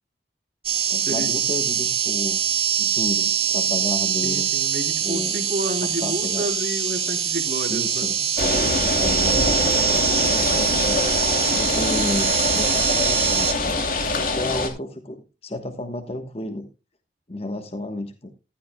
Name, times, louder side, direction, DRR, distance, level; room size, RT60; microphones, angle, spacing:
sound 1, 0.6-13.5, right 9 dB, 35° right, 2.3 m, -23 dB
voice 1, 0.9-2.4 2.8-4.5 5.0-5.5 5.8-6.5 7.7-8.2 9.0-9.5 10.2-11.0 11.4-13.8 14.1-16.7 17.3-18.3, left 1 dB, 30° left, 7 dB, 1.2 m, -32 dB
voice 2, 4.2-8.1, right 1 dB, 50° right, 2 dB, 3.5 m, -30 dB
sound 2, 8.4-14.7, left 2 dB, 50° left, 3.0 m, -24 dB
15.0 x 12.0 x 2.3 m, 0.29 s
head